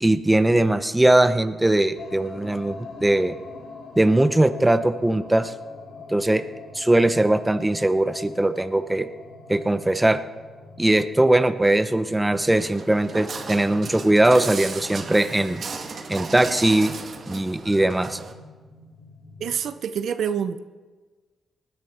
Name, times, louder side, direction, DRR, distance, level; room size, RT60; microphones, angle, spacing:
voice 1, 0.0-3.4 4.0-5.5 6.1-6.4 6.7-9.1 9.5-10.2 10.8-15.6 16.1-16.9 17.3-18.2, right 1 dB, 15° right, 11 dB, 0.8 m, -20 dB
sound 1, 2.0-19.6, left 3 dB, 80° left, 2.6 m, -44 dB
Walk footsteps, 12.5-18.3, right 4 dB, 55° right, 1.6 m, -35 dB
voice 2, 19.4-20.6, right 8 dB, 75° right, 11 dB, 0.6 m, -27 dB
19.5 x 10.5 x 4.3 m, 1.4 s
cardioid pair, 65°, 0 cm